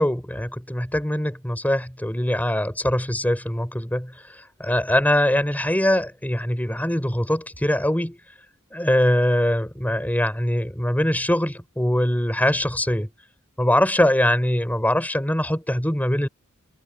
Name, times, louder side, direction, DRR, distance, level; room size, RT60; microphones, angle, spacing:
voice 1, 0.0-4.1 4.6-8.2 8.7-13.1 13.6-16.3, left 1 dB, 10° left, 4.1 m, -22 dB
head